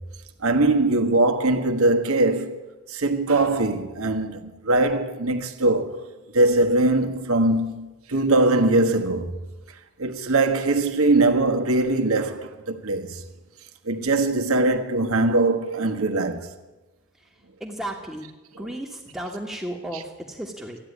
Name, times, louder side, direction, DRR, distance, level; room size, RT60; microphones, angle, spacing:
voice 1, 0.4-2.6 2.9-6.0 6.3-9.4 10.0-13.2 13.9-16.5, right 2 dB, 80° right, 1.4 m, -21 dB
voice 2, 17.6-18.3 18.6-20.8, right 1 dB, 5° right, 1.4 m, -34 dB
14.0 x 10.0 x 9.5 m
head